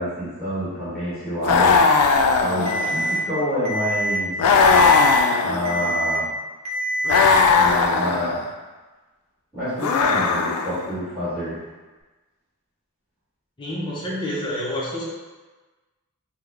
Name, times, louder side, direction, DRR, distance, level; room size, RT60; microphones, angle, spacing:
voice 1, 0.0-1.8 2.3-4.4 5.4-6.3 7.5-8.4 9.5-11.6, equal, ahead, -14 dB, 1.2 m, -27 dB
sound 1, 1.4-3.2 4.4-5.9 7.0-8.4 9.8-10.9, left 4 dB, 80° left, 0.3 m, -18 dB
Alarm, 2.7-3.2 3.7-4.2 4.7-5.2 5.7-6.2 6.7-7.2, right 1 dB, 30° right, 0.6 m, -25 dB
voice 2, 13.6-15.0, left 1 dB, 20° left, -6 dB, 0.6 m, -28 dB
3.4 x 2.0 x 3.4 m, 1.2 s
head